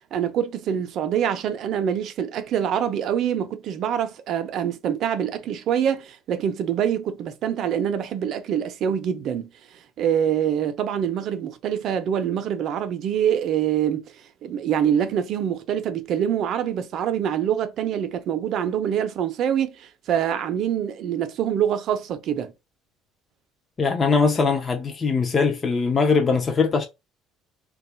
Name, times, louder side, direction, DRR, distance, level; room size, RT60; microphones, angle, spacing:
voice 1, 0.1-9.5 10.0-14.1 14.4-22.5, right 9 dB, 45° right, 0.6 m, -25 dB
voice 2, 23.8-26.9, left 4 dB, 20° left, 0.4 m, -21 dB
3.3 x 2.3 x 4.3 m
cardioid pair, 160°, 0 cm